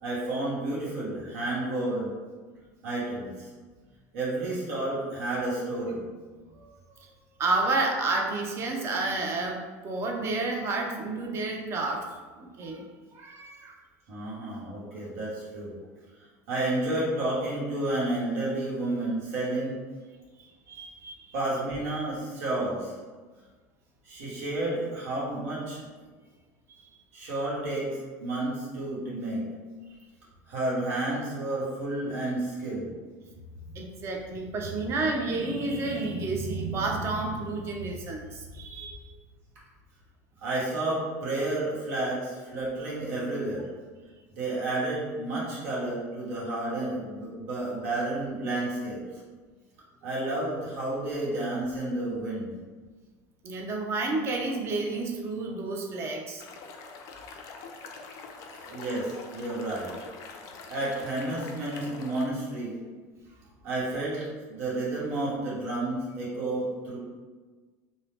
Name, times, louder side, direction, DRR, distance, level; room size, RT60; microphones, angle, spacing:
voice 1, 0.0-2.1 2.8-3.5 4.1-6.0 14.1-15.7 16.5-19.8 21.3-22.9 24.0-25.8 27.1-29.4 30.5-32.9 40.4-43.7 44.3-49.0 50.0-52.5 58.5-59.9 60.7-62.8 63.6-67.0, right 2 dB, 85° right, -7 dB, 1.0 m, -31 dB
voice 2, 7.4-9.6 9.8-12.1 12.4-12.8 13.2-13.8 20.7-21.3 33.7-39.0 53.4-56.4, right 3 dB, 35° right, 1 dB, 0.5 m, -30 dB
sound 1, 56.4-62.2, left 4 dB, 50° left, 0.3 m, -45 dB
2.7 x 2.0 x 3.2 m, 1.4 s
cardioid pair, 140°, 8 cm